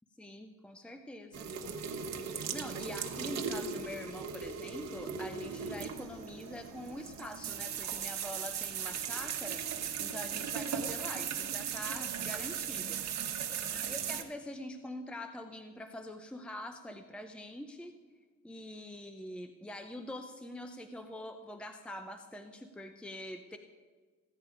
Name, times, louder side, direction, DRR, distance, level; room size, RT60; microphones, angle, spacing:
voice 1, 0.2-1.5 2.2-9.6 10.0-13.0 13.8-17.9 18.4-23.6, left 1 dB, 5° left, 7 dB, 0.7 m, -44 dB
sound 1, 1.3-14.2, right 7 dB, 60° right, 1.3 m, -38 dB
15.0 x 8.8 x 5.0 m, 1.5 s
cardioid pair, 90°, 30 cm